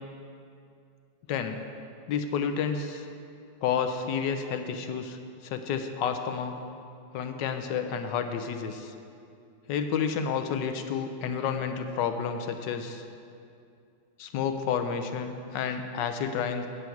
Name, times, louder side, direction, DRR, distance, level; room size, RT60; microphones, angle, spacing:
voice 1, 2.1-3.1 3.6-6.6 7.1-8.9 9.7-13.0 14.2-16.7, left 7 dB, 75° left, 7 dB, 1.2 m, -30 dB
8.2 x 5.8 x 7.7 m, 2.5 s
omnidirectional pair, 2.1 m